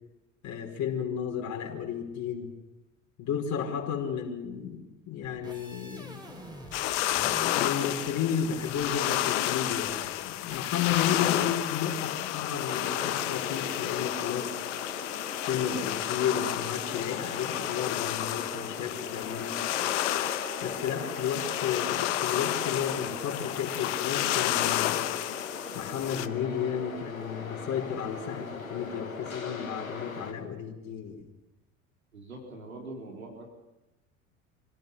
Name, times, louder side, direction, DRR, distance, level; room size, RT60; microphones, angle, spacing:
voice 1, 0.4-2.5 3.2-6.4 7.2-14.5 15.4-19.6 20.6-25.1 25.7-31.3, left 8 dB, 45° left, 0 dB, 4.9 m, -33 dB
sound 1, 5.2-6.9 7.1-9.1 9.4-10.1 10.5-10.6 10.9-11.1, right 1 dB, 10° right, 6.2 m, -46 dB
sound 2, 6.7-26.3, left 14 dB, 60° left, 1.2 m, -31 dB
sound 3, 12.7-30.3, left 4 dB, 85° left, 1.7 m, -40 dB
voice 2, 32.1-33.5, right 2 dB, 80° right, -1 dB, 4.2 m, -43 dB
27.0 x 17.0 x 7.0 m, 0.98 s
figure-of-eight pair, 70°, 40 cm